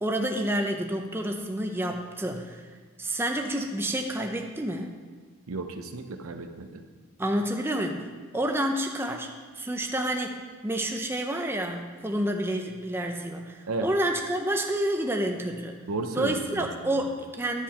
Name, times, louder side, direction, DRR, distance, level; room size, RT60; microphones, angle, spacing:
voice 1, 0.0-2.7 3.0-5.0 7.2-8.1 8.3-9.3 9.6-15.8 16.1-17.6, right 1 dB, 10° right, 3 dB, 0.5 m, -29 dB
voice 2, 5.5-6.8 13.7-13.9 15.9-17.0, right 3 dB, 75° right, 7 dB, 0.7 m, -33 dB
10.5 x 7.5 x 4.3 m, 1.5 s
head